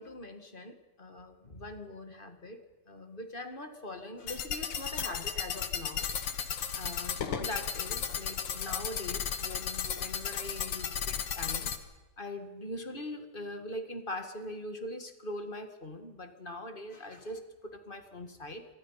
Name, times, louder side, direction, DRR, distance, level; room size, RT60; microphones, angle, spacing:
voice 1, 0.0-6.1 6.4-11.7 12.2-18.7, left 1 dB, 25° left, 7 dB, 1.8 m, -42 dB
sound 1, 4.3-11.8, left 7 dB, 70° left, 2.0 m, -34 dB
26.5 x 23.5 x 5.7 m, 1.2 s
omnidirectional pair, 2.2 m